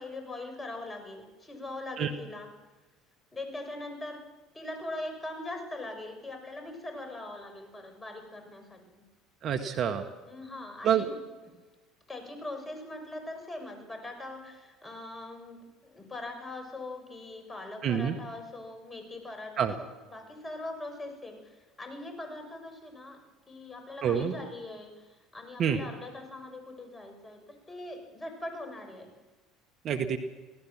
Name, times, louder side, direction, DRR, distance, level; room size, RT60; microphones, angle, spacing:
voice 1, 0.0-2.5 3.3-4.2 4.5-9.0 10.3-11.2 12.1-23.2 23.5-25.1 25.3-29.1, left 2 dB, 20° left, 5 dB, 7.0 m, -41 dB
voice 2, 9.4-10.1 10.8-11.1 17.8-18.2 19.6-19.7 24.0-24.4 25.6-25.8 29.8-30.2, right 8 dB, 50° right, 6 dB, 1.8 m, -27 dB
25.0 x 17.0 x 7.5 m, 1.2 s
hypercardioid pair, 65°, 0 cm